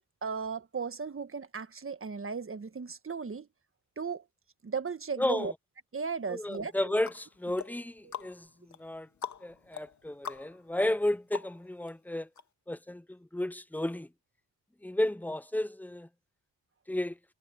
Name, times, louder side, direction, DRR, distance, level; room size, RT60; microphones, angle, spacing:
voice 1, 0.2-3.5 4.0-4.2 4.6-5.5 5.9-6.9 8.0-8.3, right 5 dB, 35° right, 1.5 m, -36 dB
voice 2, 5.2-5.5 6.3-9.1 9.4-12.3 12.7-14.1 14.8-16.1 16.9-17.2, left 1 dB, 5° left, 0.9 m, -33 dB
sound 1, 6.5-11.9 12.4-12.5, left 6 dB, 50° left, 1.7 m, -45 dB
supercardioid pair, 55°, 36 cm